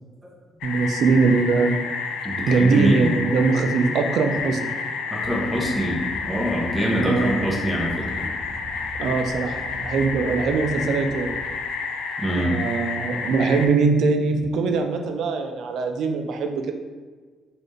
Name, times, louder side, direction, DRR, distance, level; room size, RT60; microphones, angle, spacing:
sound 1, 0.6-13.7, left 5 dB, 75° left, 0.3 m, -30 dB
voice 1, 0.6-1.7 2.5-4.7 6.9-7.5 9.0-11.4 12.4-16.7, right 4 dB, 65° right, 5 dB, 0.4 m, -22 dB
voice 2, 2.2-3.1 5.1-8.3 10.2-10.4 12.2-12.5, right 1 dB, 10° right, -4 dB, 0.9 m, -25 dB
sound 2, 5.2-11.5, equal, 50° left, 0.9 m, -40 dB
3.9 x 2.5 x 3.2 m, 1.4 s
cardioid pair, 120°, 0 cm